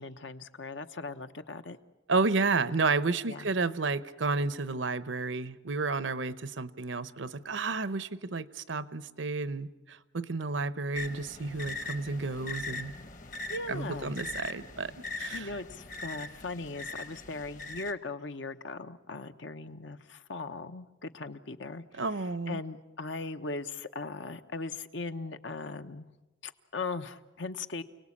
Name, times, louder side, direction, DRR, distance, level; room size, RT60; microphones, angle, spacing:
voice 1, 0.0-1.8 3.3-3.5 13.5-14.2 15.3-21.8 22.2-26.1 26.4-27.8, left 3 dB, 80° left, 9 dB, 1.1 m, -39 dB
voice 2, 2.1-12.9 13.7-14.9 15.2-15.5 22.0-22.6, right 3 dB, 80° right, 15 dB, 0.9 m, -31 dB
sound 1, 10.9-17.9, left 2 dB, 45° left, 1.1 m, -41 dB
28.5 x 18.5 x 8.6 m, 1.1 s
head